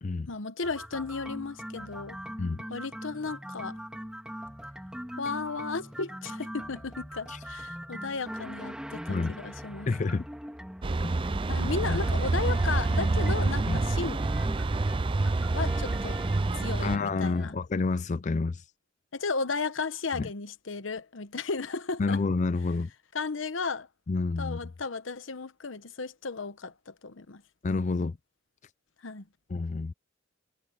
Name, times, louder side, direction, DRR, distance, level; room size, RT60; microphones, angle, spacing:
voice 1, 0.3-2.2 2.7-3.8 5.2-10.2 11.5-14.2 15.5-16.2 16.5-17.6 19.1-22.2 23.1-23.9 24.4-27.4 29.0-29.3, left 4 dB, 85° left, 1.0 m, -34 dB
sound 1, 0.6-17.5, equal, 5° right, 3.0 m, -41 dB
voice 2, 9.9-10.3 11.0-11.1 11.9-12.0 13.7-13.8 16.8-18.6 20.2-20.3 22.0-22.9 24.1-24.6 27.6-28.2 29.5-29.9, left 3 dB, 40° left, 0.4 m, -29 dB
sound 2, 10.8-17.0, right 2 dB, 25° right, 0.4 m, -27 dB
head